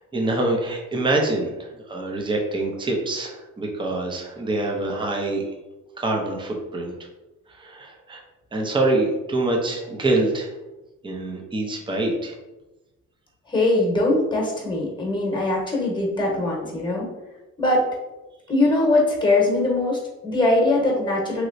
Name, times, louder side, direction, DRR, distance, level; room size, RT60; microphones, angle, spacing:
voice 1, 0.1-5.4 6.0-6.9 7.5-8.2 8.5-10.5 11.0-12.3, right 2 dB, 15° right, 0 dB, 0.6 m, -25 dB
voice 2, 13.5-17.0 17.6-17.8 18.5-21.5, left 2 dB, 15° left, -2 dB, 1.1 m, -21 dB
3.0 x 3.0 x 2.6 m, 1.0 s
cardioid pair, 90°, 30 cm